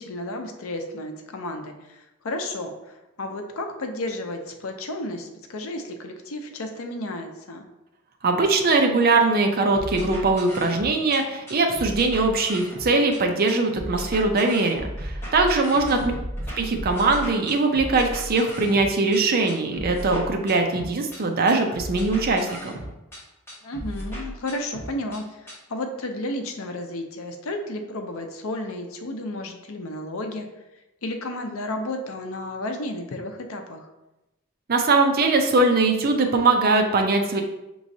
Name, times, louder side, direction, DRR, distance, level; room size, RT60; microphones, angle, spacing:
voice 1, 0.0-7.7 15.9-16.1 23.6-30.5 31.0-33.9, left 1 dB, 70° left, 5 dB, 0.6 m, -32 dB
voice 2, 8.2-16.0 16.6-22.7 34.7-37.4, right 3 dB, 45° right, 4 dB, 0.5 m, -21 dB
sound 1, 9.7-11.2 11.5-13.2 13.5-19.2 19.5-21.2 21.5-23.2 23.5-25.2 25.5-25.6, equal, 10° left, 1.5 m, -35 dB
6.0 x 3.1 x 2.7 m, 0.97 s
head